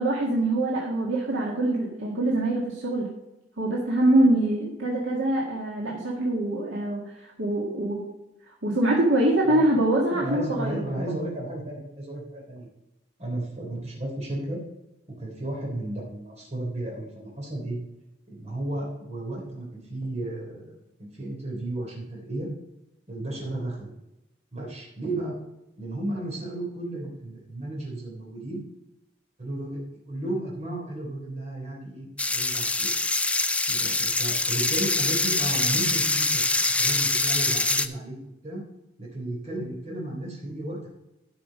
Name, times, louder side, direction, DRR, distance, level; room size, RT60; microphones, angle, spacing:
voice 1, 0.0-3.1 3.6-8.0 8.6-11.0, right 1 dB, 80° right, -3 dB, 1.7 m, -24 dB
voice 2, 10.2-12.7 13.2-14.6 15.2-17.8 18.3-20.7 21.0-22.5 23.1-23.9 24.5-25.4 25.8-28.6 29.4-32.9 33.7-38.2 38.4-38.6 39.0-40.9, right 1 dB, 35° right, -3 dB, 3.4 m, -33 dB
sound 1, 32.2-37.9, left 2 dB, 5° left, 0.5 m, -24 dB
12.0 x 6.0 x 5.1 m, 0.93 s
head